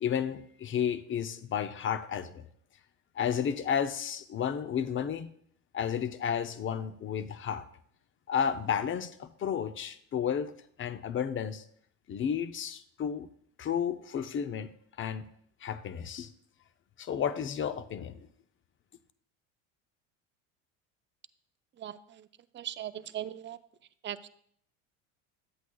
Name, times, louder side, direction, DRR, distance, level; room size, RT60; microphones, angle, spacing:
voice 1, 0.0-2.5 3.1-5.3 5.7-7.6 8.3-10.5 10.8-11.6 12.1-13.3 13.6-14.7 15.0-15.2 15.6-16.3 17.0-18.3, left 8 dB, 30° left, 12 dB, 0.6 m, -32 dB
voice 2, 21.8-22.3 22.5-23.6 24.0-24.3, right 11 dB, 30° right, 13 dB, 0.5 m, -39 dB
12.5 x 8.1 x 2.3 m, 0.67 s
hypercardioid pair, 85°, 40 cm